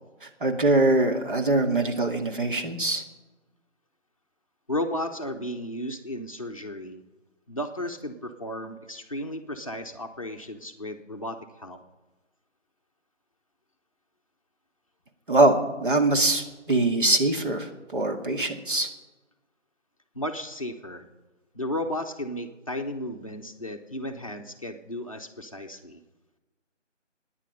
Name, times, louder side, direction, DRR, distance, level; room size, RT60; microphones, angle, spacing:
voice 1, 0.2-3.0 15.3-18.9, right 2 dB, 45° right, 3 dB, 2.1 m, -23 dB
voice 2, 4.7-7.0 7.5-11.8 20.1-21.1 21.5-26.0, left 1 dB, 25° left, 3 dB, 0.9 m, -34 dB
24.5 x 10.0 x 5.3 m, 1.2 s
figure-of-eight pair, 165°, 38 cm